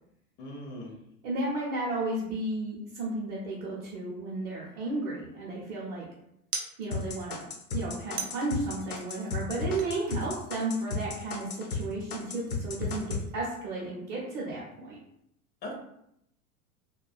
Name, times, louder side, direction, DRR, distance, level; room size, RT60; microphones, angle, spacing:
voice 1, 0.4-1.0 15.6-15.7, left 1 dB, 25° left, -1 dB, 0.5 m, -39 dB
voice 2, 1.2-6.1 6.8-7.4 7.7-15.0, right 2 dB, 40° right, -5 dB, 0.7 m, -33 dB
sound 1, 4.6-5.4 6.5-7.3 8.2-9.4 9.8-11.0 11.3-11.9 12.3-13.4, right 4 dB, 85° right, 0.6 m, -43 dB
sound 2, 6.9-11.8 12.1-13.2, left 4 dB, 80° left, 0.6 m, -33 dB
2.3 x 2.2 x 2.4 m, 0.77 s
figure-of-eight pair, 85°, 44 cm